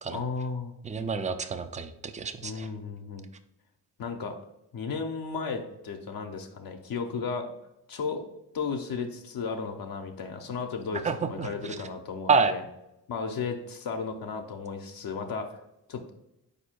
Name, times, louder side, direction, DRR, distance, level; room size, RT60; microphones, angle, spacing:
voice 1, 0.1-0.7 2.4-3.3 4.0-4.4 4.7-7.5 7.9-8.2 8.5-12.6 13.1-15.6 15.9-16.1, left 5 dB, 60° left, 3 dB, 0.7 m, -34 dB
voice 2, 0.8-2.7 11.0-11.8 12.3-12.5, right 5 dB, 20° right, 9 dB, 0.4 m, -28 dB
4.2 x 2.7 x 4.3 m, 0.87 s
supercardioid pair, 50°, 40 cm